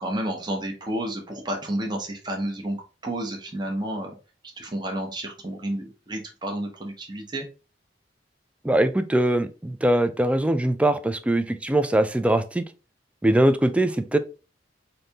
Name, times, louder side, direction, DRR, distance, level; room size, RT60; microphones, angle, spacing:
voice 1, 0.0-2.8 3.0-4.1 4.6-7.5, right 1 dB, 25° right, 0.7 m, -30 dB
voice 2, 8.6-12.6 13.2-14.2, right 1 dB, 5° right, 0.3 m, -22 dB
4.0 x 2.7 x 3.3 m
head